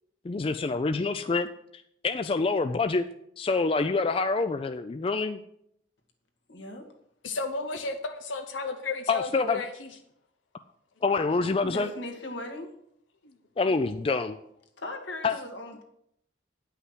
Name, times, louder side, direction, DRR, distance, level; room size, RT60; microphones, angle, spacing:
voice 1, 0.2-1.5 2.0-3.0 3.4-5.4 9.1-9.6 11.0-11.9 13.6-14.4 15.2-15.4, left 4 dB, 30° left, 9 dB, 0.3 m, -26 dB
voice 2, 6.5-6.9 11.6-12.7 14.8-15.8, left 1 dB, 75° left, 4 dB, 1.7 m, -38 dB
voice 3, 7.2-9.9, left 3 dB, 90° left, 5 dB, 0.9 m, -33 dB
9.9 x 5.7 x 6.1 m, 0.74 s
head